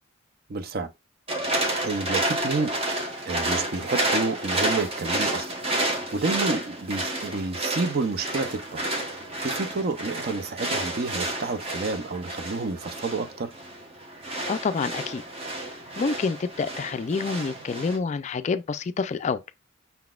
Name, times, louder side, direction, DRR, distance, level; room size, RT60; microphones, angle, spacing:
voice 1, 0.5-0.9 1.8-5.5 5.8-13.5, right 3 dB, 50° right, 0.5 m, -30 dB
sound 1, 1.3-18.0, right 1 dB, 30° right, 1.0 m, -30 dB
voice 2, 14.5-15.2 16.0-19.4, left 4 dB, 35° left, 0.3 m, -27 dB
5.6 x 3.9 x 2.3 m
head